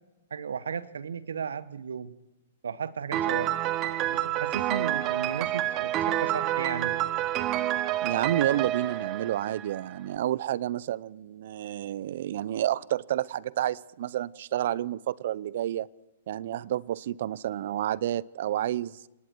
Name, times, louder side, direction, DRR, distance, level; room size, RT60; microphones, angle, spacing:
voice 1, 0.3-2.1 2.6-3.6 4.1-7.0, right 6 dB, 75° right, 1.2 m, -35 dB
Piano, 3.1-9.9, right 13 dB, 35° right, 1.1 m, -28 dB
voice 2, 8.0-15.9 16.3-19.1, right 12 dB, 60° right, 0.6 m, -30 dB
30.0 x 19.0 x 4.6 m
hypercardioid pair, 120°, 0 cm